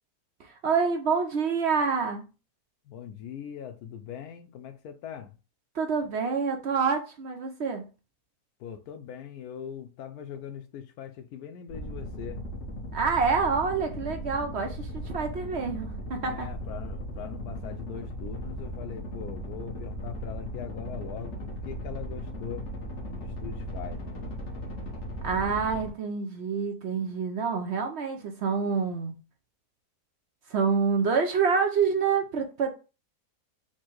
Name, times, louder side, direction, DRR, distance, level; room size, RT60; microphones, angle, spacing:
voice 1, 0.4-2.3 5.7-7.8 12.9-16.5 25.2-29.1 30.5-32.7, right 5 dB, 60° right, 0.8 m, -27 dB
voice 2, 2.8-5.4 8.6-12.4 16.2-21.3 21.6-22.6 23.2-24.1, left 8 dB, 90° left, 1.2 m, -41 dB
sound 1, 11.7-25.9, equal, 55° left, 1.3 m, -37 dB
4.5 x 2.2 x 4.5 m
omnidirectional pair, 1.6 m